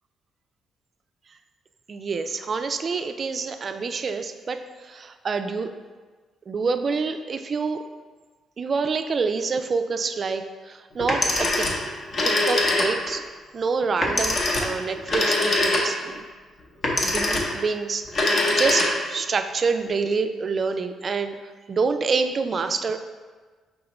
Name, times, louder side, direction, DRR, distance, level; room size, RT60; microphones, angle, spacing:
voice 1, 1.9-5.7 6.5-7.8 8.6-11.7 12.2-13.2 13.5-16.2 17.0-21.4 21.7-23.0, right 4 dB, 45° right, 8 dB, 0.3 m, -27 dB
Telephone, 11.0-13.2 14.0-16.2 16.8-17.6 18.1-19.2, left 2 dB, 50° left, 0.8 m, -23 dB
4.9 x 3.6 x 3.0 m, 1.4 s
cardioid pair, 90°, 0 cm